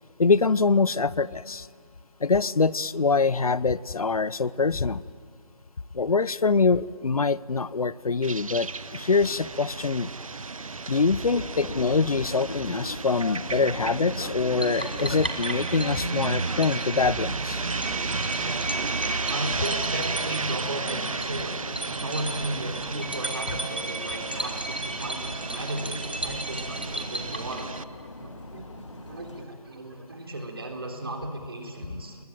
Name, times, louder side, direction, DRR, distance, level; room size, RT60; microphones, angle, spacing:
voice 1, 0.2-1.7 2.2-5.0 5.9-10.1 10.9-17.6, left 4 dB, 70° left, 21 dB, 0.7 m, -24 dB
sound 1, 8.2-27.8, right 4 dB, 60° right, 0.8 m, -33 dB
sound 2, 11.3-29.5, left 2 dB, 50° left, 2.0 m, -41 dB
sound 3, 14.6-28.0, right 1 dB, 15° right, 0.7 m, -36 dB
voice 2, 19.3-21.6 21.9-27.7 28.2-32.2, right 1 dB, 40° right, 3 dB, 3.5 m, -35 dB
29.0 x 20.0 x 9.1 m, 2.3 s
figure-of-eight pair, 180°, 19 cm